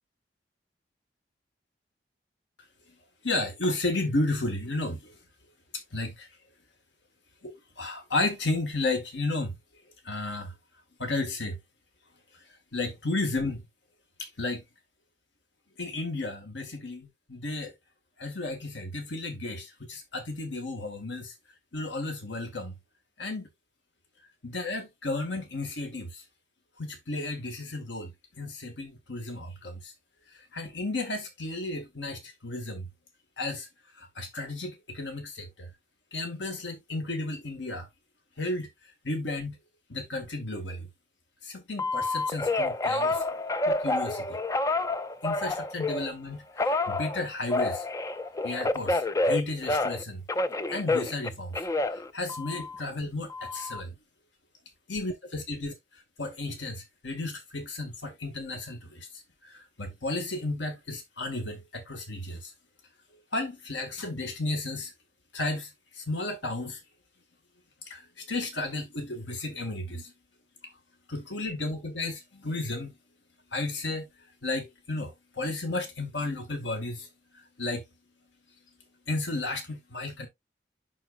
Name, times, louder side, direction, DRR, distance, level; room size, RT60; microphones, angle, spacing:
voice 1, 3.2-5.1 5.9-6.3 7.4-9.6 10.0-10.5 11.0-11.6 12.7-13.6 14.2-14.6 15.8-17.7 18.2-21.3 21.7-22.8 23.2-23.5 24.4-26.2 26.8-28.1 28.4-29.9 30.3-32.9 33.4-33.7 34.0-35.7 36.1-37.9 38.4-39.6 39.9-40.9 41.4-43.2 43.7-44.4 45.2-47.8 48.4-50.2 50.7-51.7 51.9-54.0 54.9-59.1 59.4-62.5 63.3-64.9 65.3-66.8 67.8-70.1 71.1-73.0 73.5-74.1 74.4-77.1 77.3-77.8 79.1-80.3, left 2 dB, 80° left, 1.7 m, -33 dB
Telephone, 41.8-46.1 46.6-50.0 50.3-52.8 53.3-53.8, left 2 dB, 15° left, 0.3 m, -28 dB
11.5 x 4.1 x 2.4 m
head